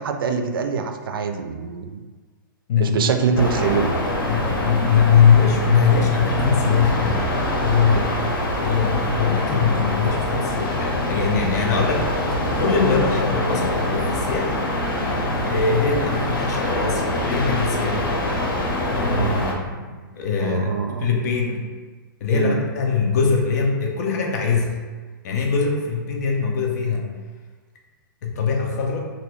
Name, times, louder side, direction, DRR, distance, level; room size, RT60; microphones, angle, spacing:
voice 1, 0.0-2.0 2.8-3.9 19.1-19.6 20.4-21.1 22.3-22.6, right 6 dB, 85° right, 6 dB, 0.4 m, -24 dB
voice 2, 2.7-3.1 4.3-7.3 7.6-8.0 8.6-14.6 15.4-18.0 18.9-21.6 22.2-24.7 25.2-27.1 28.2-29.0, left 5 dB, 50° left, 0 dB, 0.6 m, -21 dB
sound 1, 3.4-19.5, left 1 dB, 90° left, 0.7 m, -24 dB
3.0 x 2.6 x 3.0 m, 1.4 s
hypercardioid pair, 160°, 12 cm